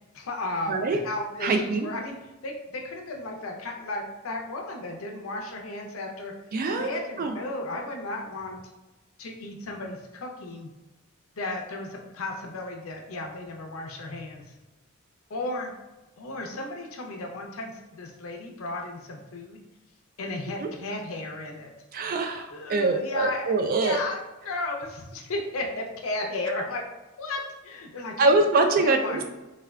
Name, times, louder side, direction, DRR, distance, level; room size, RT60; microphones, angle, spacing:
voice 1, 0.1-6.3 6.7-8.6 9.2-10.7 11.4-14.4 15.3-15.7 16.2-19.6 20.2-21.7 22.5-23.5 23.8-24.2 24.4-26.8 27.2-29.2, left 2 dB, 75° left, 2 dB, 0.5 m, -34 dB
voice 2, 0.7-1.0 1.4-1.9 6.5-6.9 7.2-7.3 20.6-20.7 21.9-24.0 28.2-29.2, right 3 dB, 45° right, 6 dB, 0.3 m, -24 dB
3.4 x 2.2 x 2.2 m, 1.1 s
head